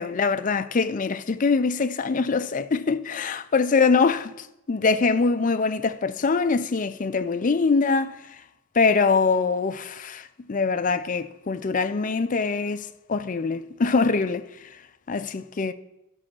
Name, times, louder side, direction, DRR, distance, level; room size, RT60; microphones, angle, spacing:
voice 1, 0.0-8.4 8.7-14.8 15.1-15.7, left 4 dB, 35° left, 0.4 m, -23 dB
11.0 x 6.2 x 6.1 m
head